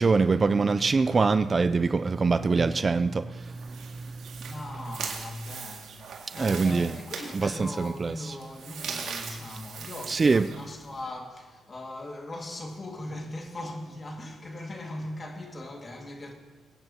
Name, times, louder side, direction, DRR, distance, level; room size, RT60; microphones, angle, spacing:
voice 1, 0.0-4.5 6.4-6.9 7.3-8.4 10.1-10.5, right 4 dB, 30° right, 0.3 m, -24 dB
sound 1, 3.3-11.0, right 6 dB, 70° right, 2.1 m, -41 dB
voice 2, 4.4-16.3, left 1 dB, 30° left, 2.0 m, -39 dB
24.0 x 9.3 x 2.8 m
cardioid pair, 90°, 0 cm